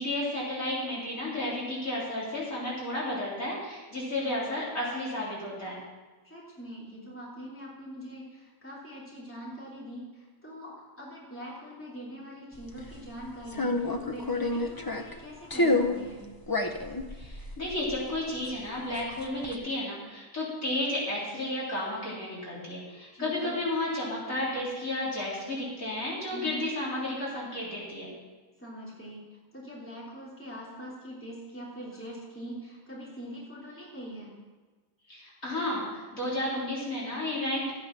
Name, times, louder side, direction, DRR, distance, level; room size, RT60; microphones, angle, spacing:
voice 1, 0.0-5.8 17.1-28.1 35.1-37.7, left 1 dB, 65° left, -6 dB, 4.1 m, -32 dB
voice 2, 6.2-16.2 23.1-23.6 26.3-26.6 28.6-29.2 29.5-34.3, equal, 10° left, -6 dB, 3.2 m, -43 dB
sound 1, 12.6-13.0 13.5-15.2 15.5-16.0 16.4-18.7 19.0-19.5, left 2 dB, 30° left, 0.4 m, -29 dB
13.5 x 8.8 x 6.0 m, 1.3 s
omnidirectional pair, 1.5 m